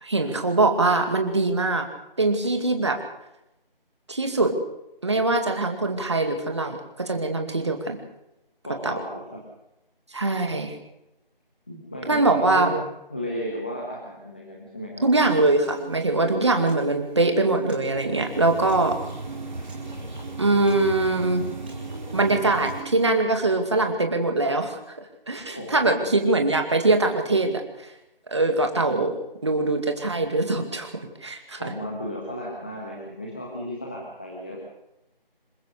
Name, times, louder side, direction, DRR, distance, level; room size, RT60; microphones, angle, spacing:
voice 1, 0.0-1.9 2.2-3.0 4.1-4.5 5.0-8.0 8.8-8.9 10.1-10.7 12.1-12.7 15.0-19.0 20.4-21.4 22.1-24.8 25.3-27.6 28.3-29.1 29.4-30.9 31.2-31.6, right 2 dB, 30° right, 5 dB, 2.3 m, -22 dB
voice 2, 8.6-9.2 11.7-15.0 25.5-26.2 31.6-34.6, equal, 10° left, -3 dB, 1.5 m, -34 dB
Piano, 15.2-23.2, right 6 dB, 10° right, 2.3 m, -42 dB
sound 1, 18.0-22.8, right 2 dB, 50° right, 2.7 m, -37 dB
27.0 x 16.0 x 6.7 m, 0.89 s
figure-of-eight pair, 175°, 29 cm